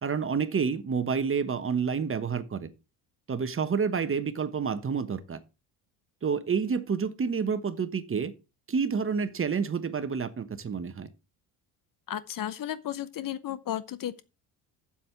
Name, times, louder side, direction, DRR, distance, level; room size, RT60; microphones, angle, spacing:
voice 1, 0.0-2.7 3.3-5.4 6.2-8.3 8.7-11.1, right 6 dB, 30° right, 1.1 m, -29 dB
voice 2, 12.1-14.2, left 11 dB, 45° left, 0.9 m, -34 dB
7.6 x 7.4 x 5.8 m
supercardioid pair, 75°, 46 cm